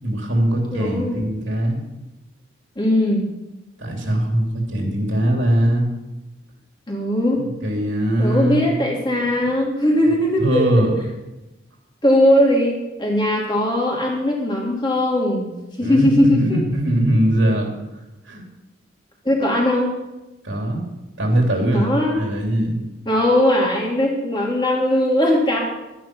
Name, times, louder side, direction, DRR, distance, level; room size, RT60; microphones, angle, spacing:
voice 1, 0.0-1.8 3.8-5.9 7.4-8.7 9.4-9.5 10.0-10.9 15.8-17.7 18.2-18.4 20.4-20.8 21.2-22.8, right 1 dB, 85° right, 1 dB, 3.3 m, -21 dB
voice 2, 0.7-1.1 2.8-3.2 6.9-7.4 8.2-10.8 12.0-12.7 13.0-15.5 15.8-16.6 19.2-19.9 21.7-22.2 23.0-25.6, left 1 dB, 25° left, -2 dB, 3.0 m, -19 dB
13.0 x 10.0 x 6.3 m, 1.0 s
head